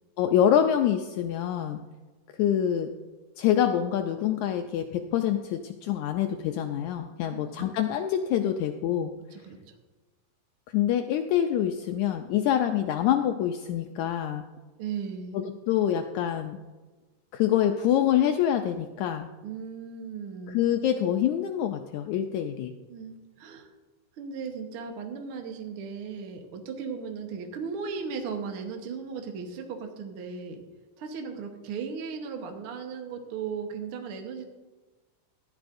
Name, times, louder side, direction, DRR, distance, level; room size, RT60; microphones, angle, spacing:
voice 1, 0.2-1.8 2.4-2.9 3.4-9.1 10.7-14.4 15.3-16.6 17.3-19.3 20.5-22.7, left 10 dB, 90° left, 6 dB, 1.6 m, -26 dB
voice 2, 7.3-7.7 9.3-9.6 14.8-15.4 19.4-20.6 22.9-23.7 24.2-30.6 31.0-34.4, right 6 dB, 65° right, 3 dB, 1.4 m, -36 dB
15.5 x 12.0 x 2.6 m, 1.2 s
omnidirectional pair, 4.0 m